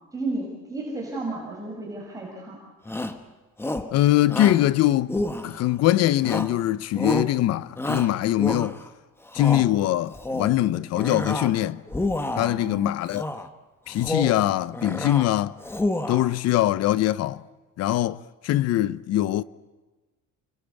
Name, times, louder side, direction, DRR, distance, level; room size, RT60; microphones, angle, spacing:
voice 1, 0.1-2.6 12.4-13.0, right 2 dB, 10° right, 6.0 m, -33 dB
Shout, 2.9-3.2 3.6-3.9 4.3-4.6 5.1-5.8 6.2-6.6 6.9-7.3 7.8-8.9 9.3-9.7 10.1-10.6 10.9-11.6 11.9-12.6 13.1-13.5 13.9-14.4 14.7-15.3 15.6-16.3, left 1 dB, 10° left, 1.2 m, -29 dB
voice 2, 3.9-5.2 5.4-8.8 9.3-11.8 12.4-13.2 13.9-15.6 16.1-17.4 17.8-19.4, left 14 dB, 60° left, 0.8 m, -22 dB
29.5 x 22.0 x 8.4 m
cardioid pair, 165°, 30 cm